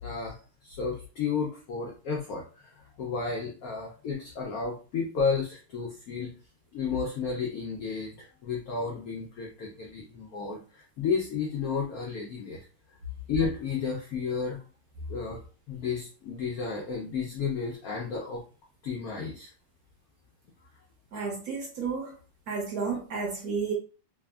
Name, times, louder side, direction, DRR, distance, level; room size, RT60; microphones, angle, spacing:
voice 1, 0.0-6.3 6.7-12.6 13.3-14.6 15.1-15.4 15.7-18.4 18.8-19.5, left 5 dB, 80° left, -2 dB, 0.8 m, -32 dB
voice 2, 21.1-22.2 22.5-23.7, right 5 dB, 60° right, -1 dB, 1.1 m, -32 dB
3.4 x 2.0 x 2.2 m, 0.36 s
omnidirectional pair, 2.1 m